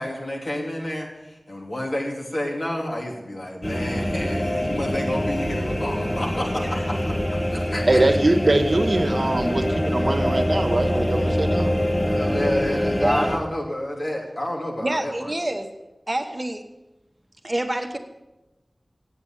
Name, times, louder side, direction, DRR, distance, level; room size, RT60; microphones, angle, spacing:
voice 1, 0.0-8.0 12.0-15.3, left 1 dB, 60° left, -1 dB, 2.9 m, -30 dB
sound 1, 3.6-13.4, equal, 30° left, 1.4 m, -24 dB
voice 2, 7.9-11.7, right 2 dB, 60° right, 6 dB, 1.2 m, -22 dB
voice 3, 14.8-15.7 16.1-16.7 17.4-18.0, right 1 dB, 35° right, 6 dB, 1.2 m, -26 dB
8.6 x 7.9 x 8.7 m, 1.0 s
wide cardioid pair, 45°, 0 cm